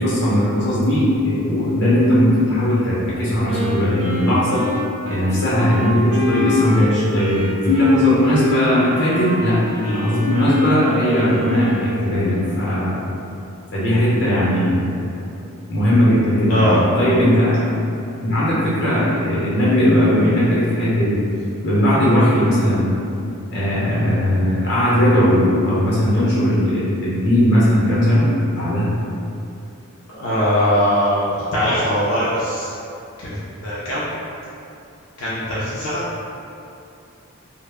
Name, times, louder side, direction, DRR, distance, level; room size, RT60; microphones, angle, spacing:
voice 1, 0.0-4.6 5.1-13.0 13.7-15.1 15.7-17.6 18.2-21.1 21.6-22.9 23.5-28.3 28.6-28.9, left 1 dB, 50° left, -9 dB, 0.8 m, -18 dB
Wind instrument woodwind instrument, 3.5-12.1, equal, 75° right, 0.4 m, -27 dB
voice 2, 16.5-16.8 30.2-32.7 33.2-33.4 33.6-34.1 35.2-36.0, equal, 75° left, -10 dB, 0.5 m, -20 dB
2.1 x 2.0 x 3.4 m, 2.7 s
head